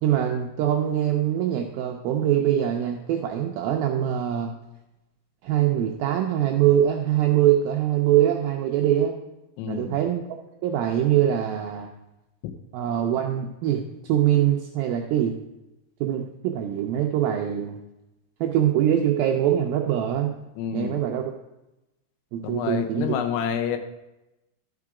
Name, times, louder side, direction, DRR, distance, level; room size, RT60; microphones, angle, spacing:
voice 1, 0.0-4.5 5.4-9.2 9.7-11.9 12.7-15.3 16.0-17.8 18.4-20.3 20.7-21.3 22.3-23.2, right 11 dB, 85° right, 2 dB, 2.1 m, -23 dB
voice 2, 9.6-10.0 12.4-12.5 20.6-21.0 22.4-23.8, left 8 dB, 80° left, 7 dB, 2.7 m, -28 dB
12.0 x 4.8 x 4.8 m, 0.96 s
omnidirectional pair, 4.9 m